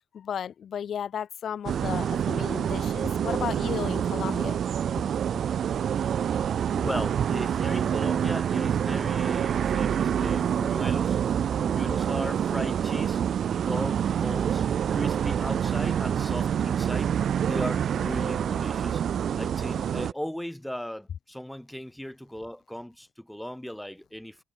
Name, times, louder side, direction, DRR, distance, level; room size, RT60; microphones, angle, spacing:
voice 1, 0.1-4.6, left 8 dB, 60° left, 1.5 m, -34 dB
sound 1, 1.7-20.1, right 8 dB, 60° right, 0.7 m, -27 dB
voice 2, 6.4-11.2 11.6-13.2 13.5-19.0 19.3-24.4, equal, 5° left, 1.5 m, -37 dB
cardioid pair, 90°, 0 cm